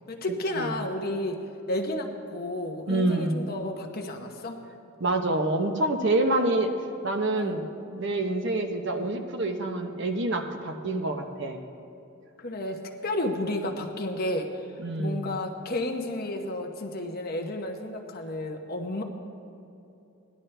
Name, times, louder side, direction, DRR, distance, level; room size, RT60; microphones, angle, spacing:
voice 1, 0.1-1.4 1.7-4.6 7.4-7.6 12.4-14.7 15.0-19.0, left 1 dB, 45° left, 3 dB, 1.0 m, -32 dB
voice 2, 2.9-3.4 5.0-6.7 7.0-7.6 7.9-11.6 14.8-15.2, right 2 dB, 55° right, 4 dB, 0.9 m, -27 dB
18.0 x 11.0 x 3.4 m, 2.8 s
head